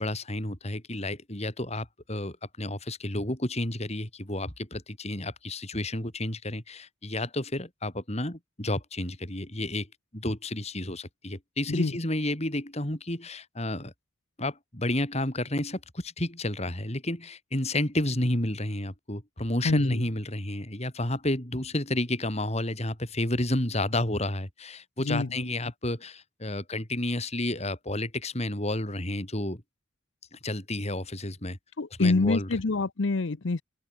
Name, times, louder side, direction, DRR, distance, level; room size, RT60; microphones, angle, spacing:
voice 1, 0.0-9.9 10.1-13.9 14.4-29.6 30.3-31.6 32.0-32.5, left 1 dB, 35° left, 4.4 m, -31 dB
voice 2, 19.6-20.1 25.0-25.5 31.8-33.6, left 3 dB, 70° left, 0.8 m, -26 dB
open air
head